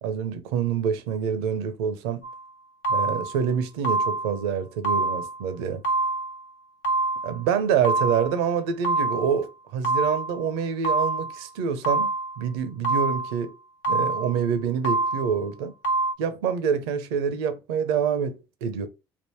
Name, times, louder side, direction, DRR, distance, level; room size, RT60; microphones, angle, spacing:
voice 1, 0.0-2.2 2.9-5.8 7.2-12.1 12.4-13.5 13.9-15.7 16.2-18.9, right 7 dB, 80° right, 0.6 m, -26 dB
sound 1, 2.2-2.4 2.8-3.4 3.8-4.4 4.8-5.4 5.8-6.4 6.8-7.4 7.8-8.4 8.8-9.4 9.8-10.4 10.8-11.4 11.8-12.4 12.8-13.4 13.8-14.4 14.8-15.4 15.8-16.1, right 3 dB, 80° left, 0.8 m, -26 dB
3.6 x 2.5 x 4.6 m
hypercardioid pair, 55°, 13 cm